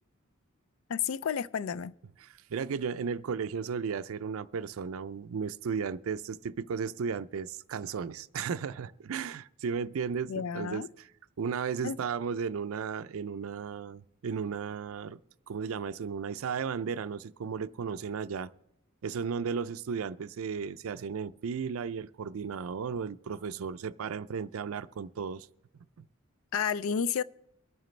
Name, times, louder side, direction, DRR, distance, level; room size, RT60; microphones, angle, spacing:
voice 1, 0.9-1.9 10.3-10.9 11.8-12.0 26.5-27.2, left 7 dB, 80° left, 0.4 m, -31 dB
voice 2, 2.2-11.1 11.4-15.2 15.5-18.5 19.0-25.5 26.0-26.1, right 6 dB, 80° right, 0.4 m, -35 dB
23.0 x 9.0 x 3.2 m
head